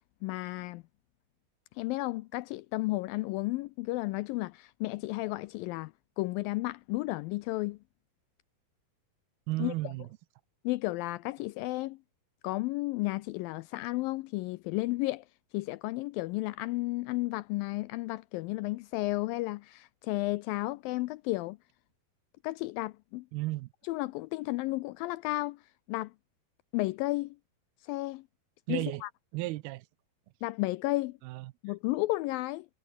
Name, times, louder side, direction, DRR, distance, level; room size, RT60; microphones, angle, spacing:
voice 1, 0.2-0.8 1.8-7.8 9.6-9.7 10.6-12.0 12.4-15.3 15.5-21.6 22.4-23.3 23.9-25.6 25.9-26.1 26.7-27.4 27.8-28.2 28.7-29.1 30.4-31.2 31.6-32.7, left 20 dB, 80° left, 2.1 m, -33 dB
voice 2, 9.5-10.1 23.3-23.7 28.7-29.0 29.3-29.9 31.2-31.5, right 19 dB, 80° right, 2.6 m, -34 dB
omnidirectional pair, 4.5 m